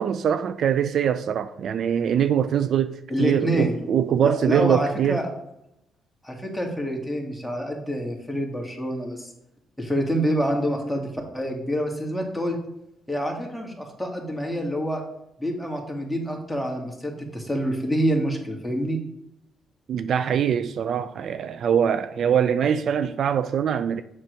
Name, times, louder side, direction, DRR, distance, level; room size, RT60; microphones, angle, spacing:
voice 1, 0.0-5.2 19.9-24.0, right 8 dB, 65° right, 0.3 m, -23 dB
voice 2, 3.1-3.8 4.2-5.3 6.2-9.3 9.8-12.6 13.1-15.0 15.4-19.0, equal, 5° left, 1.8 m, -27 dB
7.3 x 6.4 x 3.2 m
cardioid pair, 90°, 0 cm